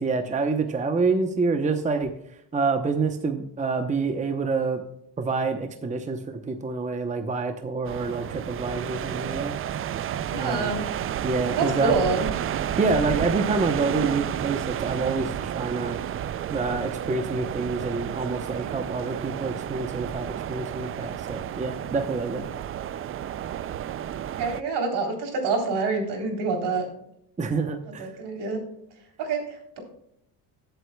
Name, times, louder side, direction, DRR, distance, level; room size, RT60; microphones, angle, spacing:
voice 1, 0.0-2.1 2.5-4.8 5.2-9.6 10.3-10.7 11.2-12.0 12.8-16.0 16.5-22.5 27.4-28.1, right 4 dB, 15° right, 7 dB, 0.8 m, -27 dB
sound 1, 7.8-24.6, right 10 dB, 35° right, 0.4 m, -31 dB
voice 2, 10.3-10.9 11.5-12.3 24.4-26.9 28.0-28.6 29.2-29.8, right 4 dB, 65° right, 2 dB, 3.6 m, -27 dB
18.0 x 8.0 x 2.3 m, 0.78 s
cardioid pair, 115°, 42 cm